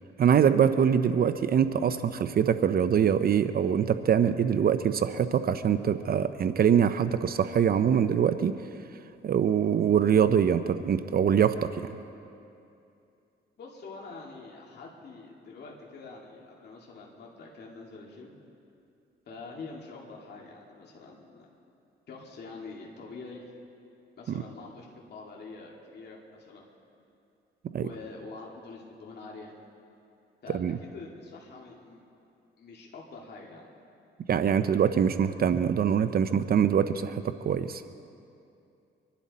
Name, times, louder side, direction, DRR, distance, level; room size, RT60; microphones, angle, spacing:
voice 1, 0.2-8.5 9.2-11.9 27.7-27.9 30.5-30.8 34.3-37.8, right 8 dB, 50° right, 11 dB, 0.6 m, -24 dB
voice 2, 13.6-18.3 19.3-21.5 22.1-23.5 24.2-26.6 27.8-29.5 30.4-32.0 32.6-33.6, left 3 dB, 55° left, -2 dB, 2.4 m, -45 dB
25.0 x 11.5 x 4.2 m, 2.6 s
cardioid pair, 90°, 20 cm